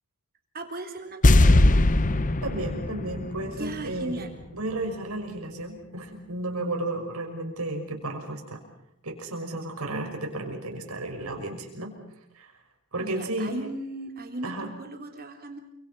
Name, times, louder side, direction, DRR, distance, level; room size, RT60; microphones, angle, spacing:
voice 1, 0.5-1.8 3.4-4.3 13.0-15.6, right 1 dB, 45° right, 4 dB, 3.7 m, -37 dB
sound 1, 1.2-4.4 4.7-4.8, left 2 dB, 35° left, 0.8 m, -21 dB
voice 2, 2.4-8.6 9.0-11.9 12.3-12.5 12.9-13.5 14.4-14.7, right 2 dB, 75° right, 3 dB, 5.9 m, -33 dB
29.0 x 25.0 x 5.6 m, 0.75 s
head